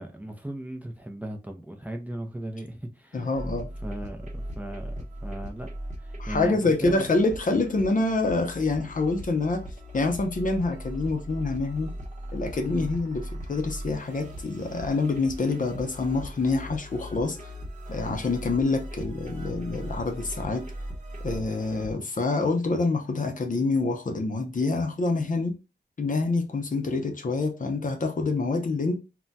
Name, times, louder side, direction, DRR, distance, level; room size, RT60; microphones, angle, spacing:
voice 1, 0.0-3.3 3.8-5.7 6.0-7.1 12.6-12.8, right 1 dB, 10° right, 0.5 m, -37 dB
voice 2, 3.1-3.7 6.2-9.6 9.9-11.9 12.3-17.5 17.9-20.6 21.2-25.5 26.0-29.0, left 3 dB, 45° left, 0.6 m, -26 dB
sound 1, 3.3-21.9, equal, 45° right, 0.9 m, -39 dB
2.2 x 2.2 x 3.9 m
wide cardioid pair, 75°, 18 cm